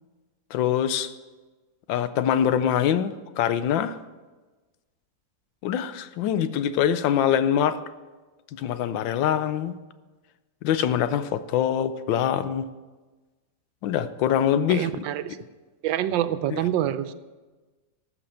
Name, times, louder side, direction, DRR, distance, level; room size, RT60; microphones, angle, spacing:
voice 1, 0.5-1.1 1.9-4.0 5.6-7.8 8.6-9.8 10.6-12.6 13.8-15.0 16.5-16.6, left 9 dB, 80° left, 1.4 m, -24 dB
voice 2, 14.7-15.4 15.8-17.1, right 11 dB, 80° right, 1.3 m, -26 dB
14.0 x 6.0 x 7.7 m
omnidirectional pair, 2.0 m